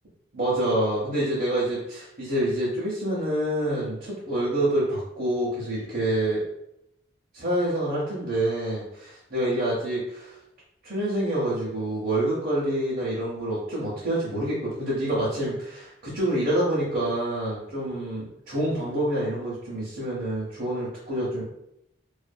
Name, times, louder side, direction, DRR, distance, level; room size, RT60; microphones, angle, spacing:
voice 1, 0.3-6.4 7.3-10.3 10.8-21.4, right 1 dB, 50° right, -7 dB, 0.7 m, -27 dB
2.5 x 2.5 x 2.2 m, 0.81 s
head